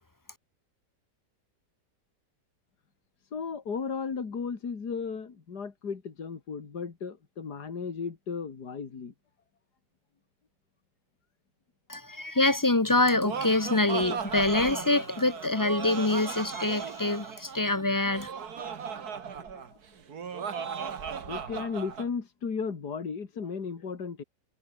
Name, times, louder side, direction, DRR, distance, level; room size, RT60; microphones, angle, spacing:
voice 1, 3.3-9.1 19.5-19.8 21.3-24.2, left 5 dB, 65° left, 3.0 m, -35 dB
voice 2, 11.9-18.3, left 2 dB, 25° left, 0.4 m, -25 dB
Laughter, 13.0-22.1, right 6 dB, 60° right, 2.2 m, -36 dB
omnidirectional pair, 1.9 m